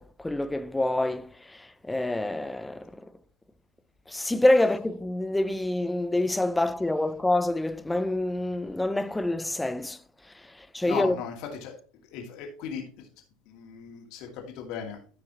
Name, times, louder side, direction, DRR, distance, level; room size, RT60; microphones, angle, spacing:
voice 1, 0.0-3.1 4.1-10.0 10.6-11.2, left 1 dB, 10° left, 0.5 m, -27 dB
voice 2, 10.8-11.7 12.1-13.1 13.5-15.0, left 7 dB, 55° left, 2.5 m, -37 dB
15.0 x 5.9 x 3.0 m
figure-of-eight pair, 70°, 0 cm